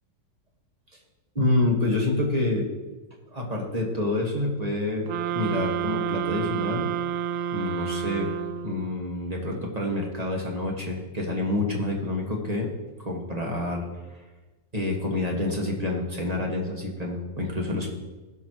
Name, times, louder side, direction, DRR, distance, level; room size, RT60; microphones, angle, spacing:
voice 1, 1.3-2.7 3.3-5.1 5.3-6.9 7.5-8.3 8.6-12.7 13.0-13.8 14.7-17.9, left 2 dB, 25° right, -1 dB, 1.5 m, -27 dB
sound 1, 5.1-8.9, right 9 dB, 85° right, 0.7 m, -29 dB
17.0 x 6.2 x 3.1 m, 1.2 s
omnidirectional pair, 1.9 m